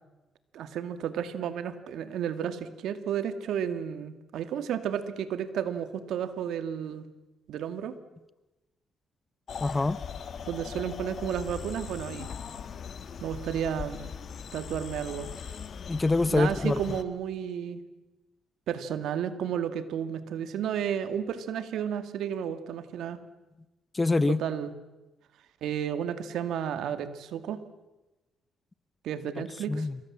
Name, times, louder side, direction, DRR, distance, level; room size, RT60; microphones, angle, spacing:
voice 1, 0.5-7.1 7.5-7.9 10.5-12.3 13.2-14.0 14.5-15.3 16.3-17.8 18.7-23.2 24.3-24.7 25.6-27.6 29.0-29.9, right 9 dB, 80° right, 2.2 m, -32 dB
sound 1, 9.5-17.0, left 7 dB, 55° left, 1.7 m, -40 dB
voice 2, 9.6-10.0 15.9-16.8 23.9-24.4 29.7-30.0, left 3 dB, 20° left, 0.9 m, -25 dB
27.0 x 23.5 x 7.5 m
cardioid pair, 90°, 0 cm